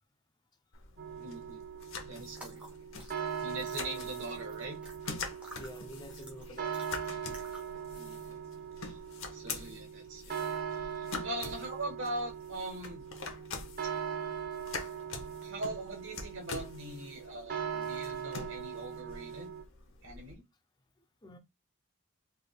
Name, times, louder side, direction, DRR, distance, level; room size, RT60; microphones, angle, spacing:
sound 1, 0.7-20.3, left 4 dB, 70° left, 0.8 m, -45 dB
sound 2, 1.0-19.6, right 7 dB, 40° right, 0.8 m, -40 dB
voice 1, 1.2-1.6 2.0-2.6 3.4-4.8 7.9-8.4 8.8-9.0 9.3-10.4 10.8-13.0 15.4-19.5 20.0-20.4, right 1 dB, 65° right, 1.2 m, -41 dB
sound 3, 2.3-7.8, equal, 5° right, 1.0 m, -53 dB
voice 2, 5.6-6.8 21.2-21.4, left 1 dB, 20° left, 0.4 m, -48 dB
3.4 x 3.3 x 2.3 m
head